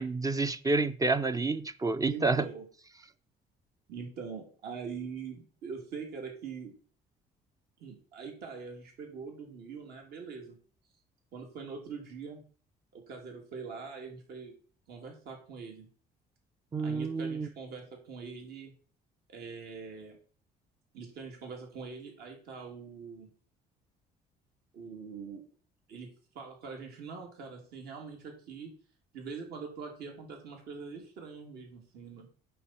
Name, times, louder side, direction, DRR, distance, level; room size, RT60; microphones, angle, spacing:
voice 1, 0.0-2.5 16.7-17.5, right 3 dB, 20° right, 0.5 m, -29 dB
voice 2, 2.0-2.6 3.9-6.7 7.8-10.6 11.3-12.4 12.9-14.5 14.9-15.9 16.8-18.7 19.3-20.2 20.9-23.3 24.7-25.5 25.9-26.1 26.3-28.7 29.1-32.3, right 5 dB, 70° right, 2.8 m, -43 dB
8.5 x 6.9 x 4.4 m
cardioid pair, 110°, 17 cm